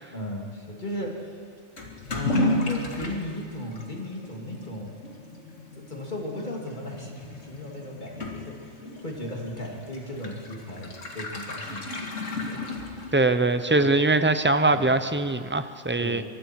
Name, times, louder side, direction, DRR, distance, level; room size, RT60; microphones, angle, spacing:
voice 1, 0.1-1.4 2.1-4.9 5.7-8.5 9.0-12.1 12.4-12.7 13.6-13.9 14.7-15.0 16.0-16.2, left 1 dB, 40° left, -1 dB, 3.2 m, -35 dB
Toilet flush / Liquid, 1.8-13.4, left 2 dB, 85° left, 2.5 m, -34 dB
voice 2, 13.1-16.2, right 2 dB, 15° right, 10 dB, 0.5 m, -22 dB
24.5 x 24.0 x 4.7 m, 2.2 s
omnidirectional pair, 1.3 m